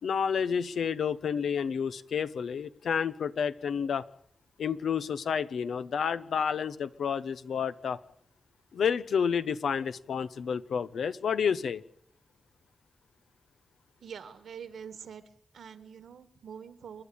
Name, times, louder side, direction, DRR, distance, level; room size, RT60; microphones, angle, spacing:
voice 1, 0.0-4.0 4.6-8.0 8.7-11.8, left 7 dB, 85° left, 13 dB, 1.2 m, -30 dB
voice 2, 14.0-15.2 15.5-17.0, right 7 dB, 90° right, 12 dB, 1.9 m, -45 dB
29.5 x 12.0 x 8.7 m, 0.68 s
cardioid pair, 80°, 0 cm